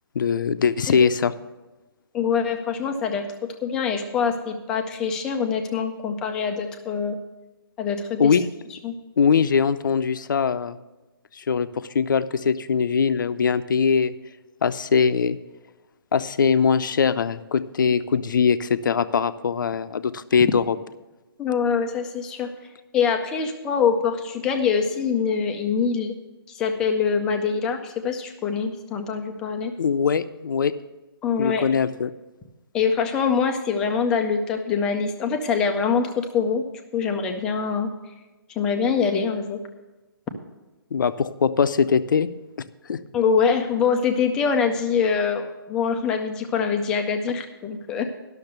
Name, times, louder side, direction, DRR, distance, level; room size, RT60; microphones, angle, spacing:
voice 1, 0.1-1.3 8.2-8.5 9.2-10.8 11.3-14.1 14.6-15.4 16.1-20.8 29.8-30.7 31.4-32.1 40.9-42.3 42.9-43.0, left 6 dB, 55° left, 13 dB, 0.6 m, -21 dB
voice 2, 2.1-7.2 7.8-8.4 8.8-8.9 21.4-22.5 22.9-26.1 26.5-29.7 31.2-31.7 32.7-36.6 36.9-37.9 38.6-39.6 43.1-48.0, left 6 dB, 5° left, 5 dB, 0.4 m, -24 dB
12.0 x 6.5 x 6.6 m, 1.1 s
hypercardioid pair, 170°, 13 cm